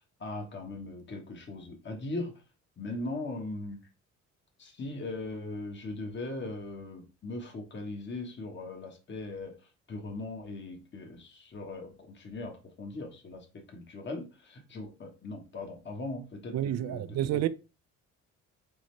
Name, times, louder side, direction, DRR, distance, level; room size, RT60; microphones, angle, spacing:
voice 1, 0.2-2.3 2.8-3.8 4.6-9.6 9.9-17.5, left 2 dB, 40° left, 1.2 m, -39 dB
voice 2, 16.5-17.5, right 12 dB, 60° right, 0.5 m, -29 dB
4.1 x 3.8 x 3.2 m
cardioid pair, 90°, 30 cm